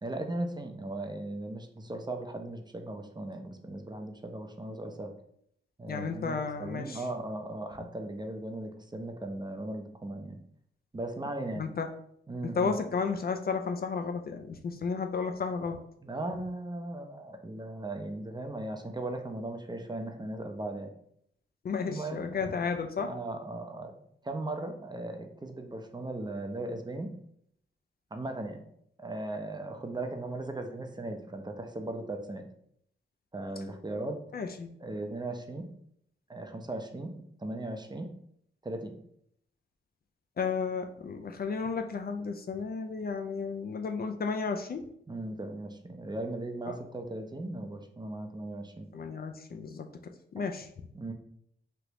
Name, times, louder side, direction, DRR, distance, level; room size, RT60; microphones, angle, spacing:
voice 1, 0.0-5.1 5.8-10.4 10.9-11.7 12.3-12.7 16.0-20.9 21.8-22.5 23.0-24.0 24.2-27.1 28.1-28.6 29.0-32.5 33.3-34.2 34.8-35.7 36.3-37.1 37.4-38.1 38.6-39.0 45.1-48.9 50.9-51.1, right 2 dB, 20° right, 5 dB, 0.5 m, -37 dB
voice 2, 5.9-7.0 11.5-11.9 12.4-15.8 21.6-23.1 34.3-34.8 40.4-44.9 46.7-46.8 48.9-50.7, left 5 dB, 45° left, 5 dB, 0.4 m, -33 dB
3.3 x 2.5 x 2.9 m, 0.70 s
cardioid pair, 50°, 21 cm